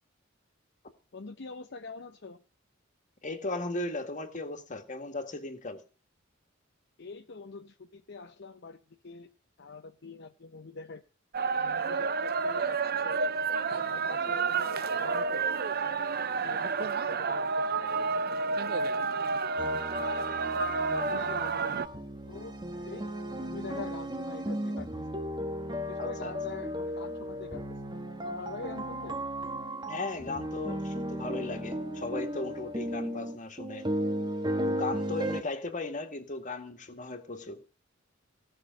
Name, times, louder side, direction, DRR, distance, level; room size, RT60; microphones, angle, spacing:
voice 1, 1.1-2.4 7.0-9.3 9.6-11.0 11.5-13.2 13.9-15.5 15.8-19.4 20.9-21.8 22.3-22.6 22.8-24.9 25.8-27.8 28.2-29.2, left 4 dB, 60° left, 0.8 m, -45 dB
voice 2, 3.2-5.8 26.0-26.3 29.9-33.9 34.6-37.6, left 2 dB, 40° left, 1.9 m, -37 dB
sound 1, 11.3-21.9, right 5 dB, 50° right, 0.7 m, -30 dB
sound 2, 19.6-35.4, equal, 20° right, 1.4 m, -35 dB
17.0 x 6.2 x 9.1 m
head